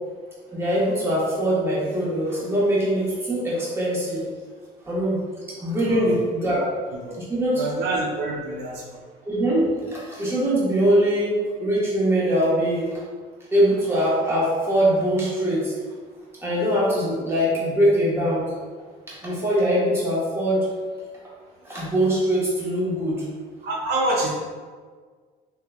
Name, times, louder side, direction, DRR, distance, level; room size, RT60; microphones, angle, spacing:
voice 1, 0.5-4.2 4.9-5.2 5.6-6.6 7.3-7.7 9.2-11.3 11.6-13.0 13.5-15.7 16.4-18.4 19.1-20.6 21.6-23.2, right 1 dB, 15° right, -7 dB, 1.3 m, -22 dB
voice 2, 7.5-9.0 23.6-24.3, right 2 dB, 80° right, -2 dB, 0.6 m, -26 dB
3.6 x 2.9 x 2.3 m, 1.5 s
cardioid pair, 110°, 17 cm